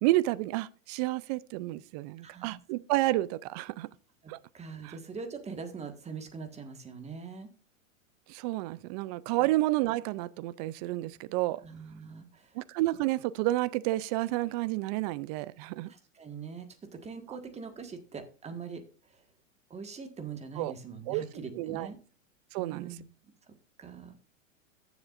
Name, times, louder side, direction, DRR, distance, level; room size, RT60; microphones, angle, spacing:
voice 1, 0.0-3.9 4.3-4.4 4.8-4.9 8.3-11.6 12.6-15.9 20.6-20.7 21.1-21.2 21.6-21.9 22.5-22.9, right 17 dB, 35° right, 0.4 m, -30 dB
voice 2, 2.2-2.6 4.2-7.5 9.4-9.5 11.6-12.6 15.9-19.2 19.7-22.0 22.6-23.0 23.5-24.2, right 5 dB, 15° right, 1.5 m, -43 dB
14.5 x 7.2 x 2.5 m
hypercardioid pair, 115°, 39 cm